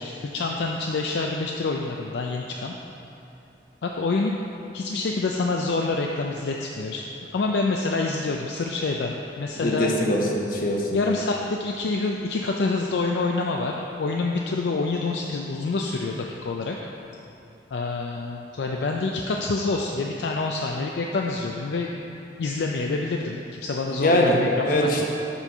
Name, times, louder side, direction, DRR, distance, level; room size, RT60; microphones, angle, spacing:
voice 1, 0.0-2.8 3.8-4.3 4.7-7.0 7.3-9.9 10.9-16.8 17.7-21.9 22.4-24.9, left 3 dB, 70° left, 0 dB, 0.4 m, -27 dB
voice 2, 9.5-10.9 23.9-24.4 24.7-25.1, left 1 dB, 50° left, -1 dB, 0.9 m, -22 dB
7.0 x 4.4 x 5.4 m, 2.9 s
head